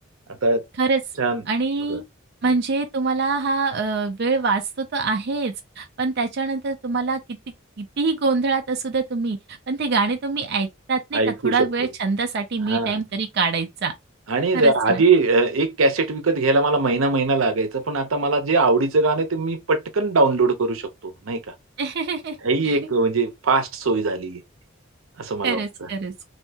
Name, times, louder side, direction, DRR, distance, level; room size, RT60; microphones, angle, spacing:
voice 1, 0.3-0.6 1.2-1.4 1.9-2.0 2.5-2.6 11.1-11.7 12.7-13.0 14.3-21.4 22.4-24.4 25.2-25.9, right 3 dB, 85° right, 0.7 m, -21 dB
voice 2, 1.5-2.0 2.4-7.2 7.8-13.9 14.5-15.0 21.8-22.4 22.6-22.8 25.4-26.1, right 4 dB, 55° right, 0.4 m, -24 dB
3.2 x 2.7 x 2.8 m
head